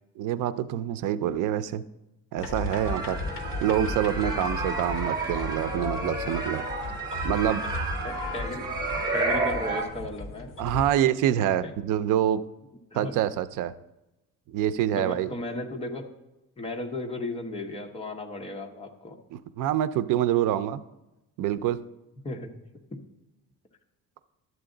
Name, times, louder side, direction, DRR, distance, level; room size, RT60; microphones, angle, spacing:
voice 1, 0.2-1.8 2.3-3.2 3.6-6.7 7.2-7.6 10.6-12.4 12.9-13.7 14.5-15.3 19.3-20.8 21.4-21.8, right 11 dB, 80° right, 14 dB, 0.5 m, -26 dB
sound 1, 2.4-10.9, left 2 dB, 40° left, 1.0 m, -36 dB
sound 2, 2.7-9.8, right 2 dB, 15° right, 1.6 m, -31 dB
voice 2, 8.0-8.7 9.1-10.5 12.9-13.2 15.0-16.1 16.6-19.2 22.2-22.5 22.9-23.0, left 2 dB, 20° left, 2 dB, 0.9 m, -35 dB
12.0 x 8.0 x 3.8 m, 0.94 s
cardioid pair, 175°, 31 cm